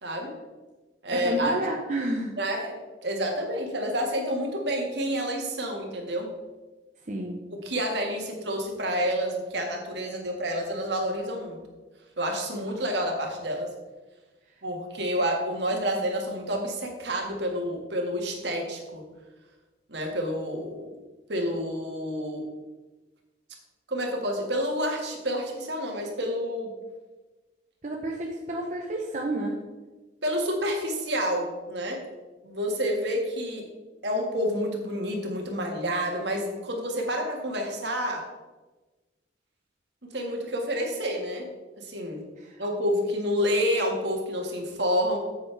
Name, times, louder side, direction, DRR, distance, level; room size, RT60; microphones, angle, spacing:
voice 1, 0.0-0.3 1.0-1.6 2.4-2.7 3.0-6.3 7.5-11.6 12.2-13.7 14.6-19.0 19.9-20.9 21.3-22.4 23.9-26.7 30.2-32.0 32.4-33.6 34.0-38.2 40.0-41.5 41.8-42.2 42.6-45.2, equal, 70° right, 1 dB, 1.8 m, -29 dB
voice 2, 1.1-2.4 7.1-7.4 27.8-29.6 42.4-42.6, right 1 dB, 40° right, -1 dB, 0.8 m, -30 dB
9.2 x 7.9 x 3.4 m, 1.2 s
head